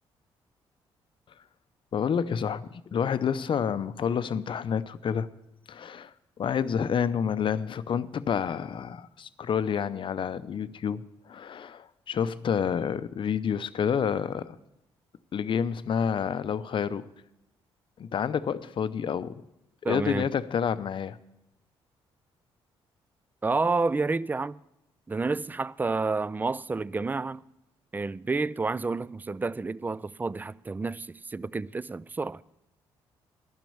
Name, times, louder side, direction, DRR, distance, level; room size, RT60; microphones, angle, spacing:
voice 1, 1.9-5.3 5.7-6.1 6.4-14.6 15.3-17.1 18.0-19.4 19.8-21.2, left 7 dB, 50° left, 0.6 m, -29 dB
voice 2, 19.8-20.3 23.4-24.6 25.1-27.4 27.9-32.4, right 3 dB, 15° right, 0.3 m, -29 dB
12.5 x 6.1 x 8.7 m
supercardioid pair, 60°, 11 cm